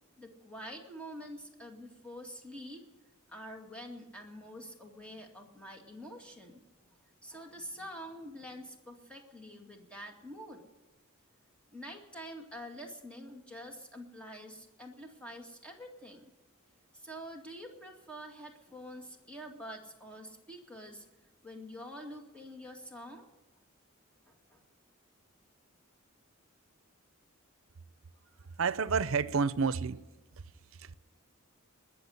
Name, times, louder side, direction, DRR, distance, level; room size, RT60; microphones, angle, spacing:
voice 1, 0.2-2.8 3.3-6.6 6.9-10.6 11.7-16.3 16.9-21.1 21.4-23.3 24.3-24.6, equal, 5° left, 2.1 m, -46 dB
voice 2, 28.6-30.0 30.8-30.9, right 5 dB, 65° right, 0.6 m, -29 dB
20.5 x 7.2 x 9.9 m
head